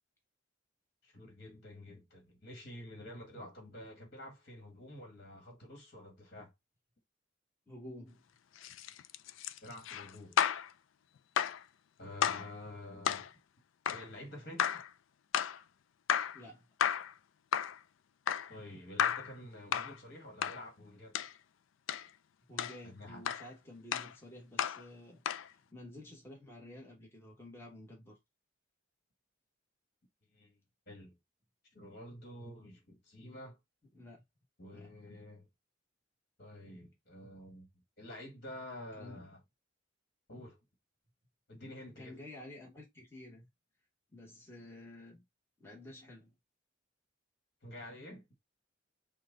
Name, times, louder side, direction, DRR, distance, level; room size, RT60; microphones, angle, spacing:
voice 1, 1.0-6.5 9.6-10.4 12.0-13.3 13.8-14.8 18.5-21.2 22.8-23.2 30.3-30.6 30.9-31.1 31.7-33.6 34.6-35.5 36.4-37.7 38.0-39.4 40.3-40.6 41.5-42.2 47.6-48.2, left 1 dB, 50° left, 1.6 m, -49 dB
voice 2, 7.7-8.2 16.3-16.7 22.5-28.2 33.9-34.2 34.7-34.9 38.9-39.2 42.0-43.5 44.1-45.2 45.6-46.3, left 1 dB, 10° left, 1.2 m, -51 dB
sound 1, 8.6-10.7 11.4-11.6 12.2-12.5 13.0-13.3 13.9-14.1 14.6-14.9 15.3-15.6 16.1-16.4 16.8-17.1 17.5-17.8 18.3-18.5 19.0-19.3 19.7-20.0 20.4-20.6 21.1-21.3 21.9-22.1 22.6-22.8 23.3-23.5 23.9-24.1 24.6-24.8 25.3-25.5, left 9 dB, 70° left, 0.3 m, -33 dB
5.9 x 2.3 x 3.7 m
head